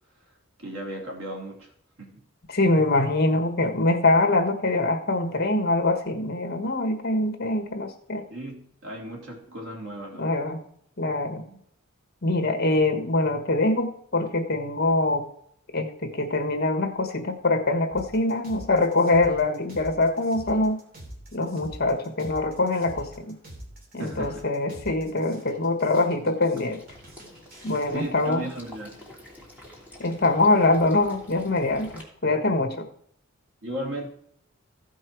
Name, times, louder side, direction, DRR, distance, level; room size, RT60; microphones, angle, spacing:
voice 1, 0.6-1.7 2.0-2.2 8.3-10.5 11.5-11.6 24.0-24.4 27.9-29.0 33.6-34.1, right 1 dB, 85° right, 0 dB, 3.2 m, -36 dB
voice 2, 2.5-8.2 10.2-10.7 11.0-11.5 12.2-15.3 15.7-20.8 21.3-23.3 23.9-26.8 27.6-28.5 30.0-32.9, left 2 dB, 50° left, 6 dB, 1.4 m, -24 dB
sound 1, 17.9-27.9, right 1 dB, 50° right, 2.9 m, -45 dB
Water / Liquid, 26.5-32.0, left 1 dB, 10° right, 3.0 m, -47 dB
15.5 x 5.5 x 4.5 m, 0.69 s
head